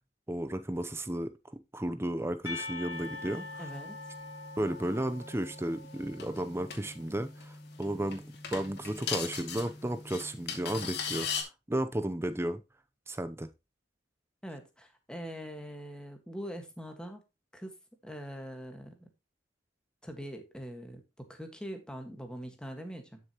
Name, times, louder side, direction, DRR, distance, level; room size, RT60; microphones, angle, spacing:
voice 1, 0.3-3.6 4.6-8.2 8.5-12.6 13.1-13.5, right 1 dB, 15° right, 0.7 m, -34 dB
Percussion / Church bell, 2.5-7.2, left 3 dB, 80° left, 2.7 m, -44 dB
sound 1, 2.9-11.4, left 6 dB, 60° left, 2.3 m, -41 dB
voice 2, 3.6-4.0 14.4-17.2 17.5-17.8 18.0-19.1 20.0-23.2, equal, 5° left, 1.7 m, -43 dB
11.0 x 6.7 x 3.0 m
head